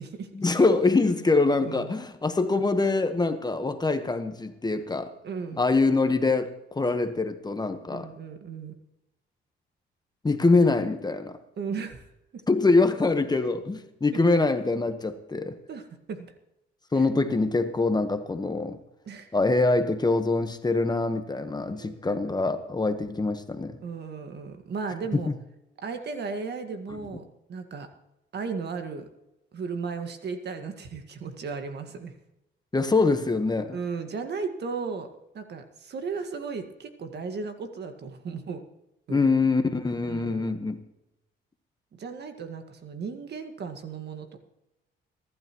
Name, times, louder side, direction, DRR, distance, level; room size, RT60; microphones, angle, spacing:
voice 1, 0.3-5.1 5.6-8.1 10.2-11.4 12.5-15.6 16.9-18.8 19.3-23.8 25.1-25.3 32.7-33.8 39.1-40.8, left 3 dB, 20° left, 1.2 m, -24 dB
voice 2, 5.2-5.6 7.9-8.7 11.6-12.0 12.3-12.4 14.1-14.2 15.7-16.3 17.0-17.1 19.0-19.3 21.7-22.2 23.8-25.3 25.8-27.2 27.5-27.9 28.3-29.1 29.5-32.1 33.7-35.1 35.3-38.6 39.1-39.2 40.0-40.5 41.9-44.4, right 5 dB, 55° right, 1.8 m, -35 dB
23.5 x 12.0 x 3.1 m
cardioid pair, 90°, 20 cm